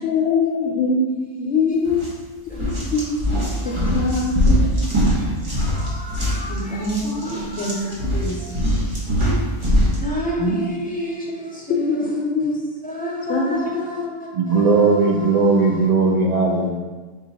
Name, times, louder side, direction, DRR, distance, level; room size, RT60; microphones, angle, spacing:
voice 1, 0.0-2.1 2.5-2.6 2.9-3.2 3.6-4.7 6.5-8.4 10.4-10.6 11.7-12.5 13.3-13.6 14.0-14.1, left 3 dB, 70° left, 1 dB, 0.9 m, -23 dB
sound 1, 1.9-2.1 2.5-10.0, equal, 25° right, 0.9 m, -22 dB
voice 2, 2.5-2.9 3.6-4.3 4.6-4.7 5.2-15.9, equal, 10° left, -5 dB, 0.7 m, -32 dB
voice 3, 14.3-16.7, right 4 dB, 80° right, -2 dB, 0.3 m, -17 dB
5.3 x 2.4 x 4.0 m, 1.3 s
omnidirectional pair, 1.2 m